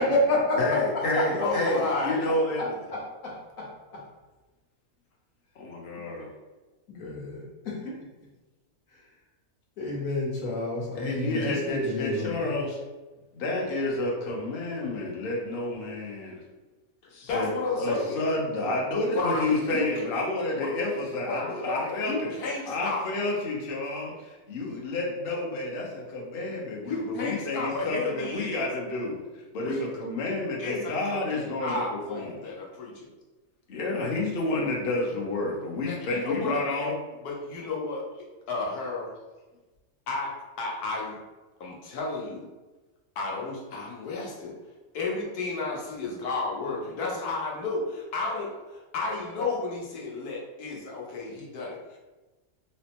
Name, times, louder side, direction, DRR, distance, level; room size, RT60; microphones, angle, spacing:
voice 1, 0.0-1.3 2.6-2.7 2.9-4.0 6.9-8.0 9.8-12.5, left 2 dB, 65° left, -4 dB, 1.3 m, -29 dB
voice 2, 0.6-2.7 5.6-6.3 11.0-12.8 13.3-16.4 17.1-22.3 22.7-29.2 29.5-32.4 33.7-36.9, left 2 dB, 50° left, -2 dB, 0.8 m, -30 dB
voice 3, 1.2-2.2 17.2-18.3 19.1-20.2 20.5-20.7 21.2-23.0 26.8-28.7 29.6-29.8 30.6-33.1 35.8-36.9 37.2-38.0 38.5-39.1 40.1-40.3 40.6-41.2 41.6-42.5 43.2-44.5 44.9-52.0, left 3 dB, 80° left, -2 dB, 1.3 m, -32 dB
4.2 x 2.1 x 2.9 m, 1.2 s
omnidirectional pair, 1.6 m